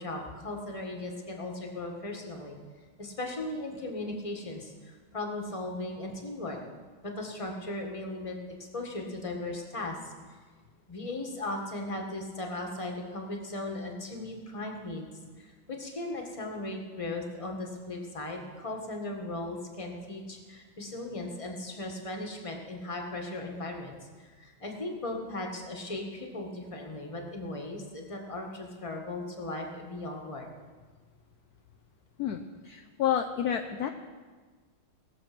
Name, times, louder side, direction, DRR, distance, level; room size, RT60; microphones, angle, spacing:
voice 1, 0.0-2.6 3.0-6.6 7.0-8.4 8.7-10.1 10.9-15.1 15.4-30.5, left 2 dB, 20° left, 1 dB, 1.4 m, -37 dB
voice 2, 32.2-33.9, left 9 dB, 70° left, 6 dB, 0.9 m, -30 dB
18.5 x 6.9 x 6.0 m, 1.4 s
omnidirectional pair, 2.2 m